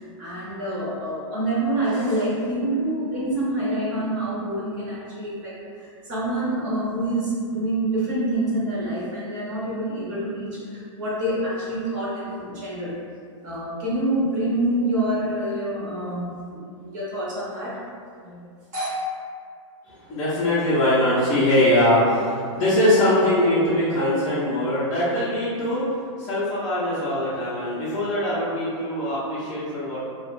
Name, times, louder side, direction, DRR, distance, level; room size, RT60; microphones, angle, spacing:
voice 1, 0.0-13.0 13.4-17.8 18.2-18.4 18.7-18.9, right 1 dB, 35° right, -8 dB, 0.7 m, -27 dB
voice 2, 20.1-25.8 26.2-30.0, left 1 dB, 15° left, -12 dB, 0.3 m, -22 dB
2.3 x 2.1 x 2.9 m, 2.3 s
supercardioid pair, 170°, 16 cm